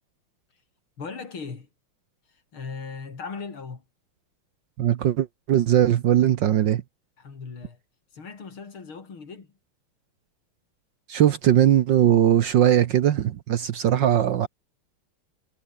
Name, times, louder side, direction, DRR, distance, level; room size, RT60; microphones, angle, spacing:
voice 1, 1.0-1.7 2.3-3.8 7.2-7.8 8.1-9.5, left 5 dB, 70° left, 4.3 m, -38 dB
voice 2, 4.8-6.8 11.1-14.5, right 11 dB, 65° right, 1.5 m, -20 dB
omnidirectional pair, 2.4 m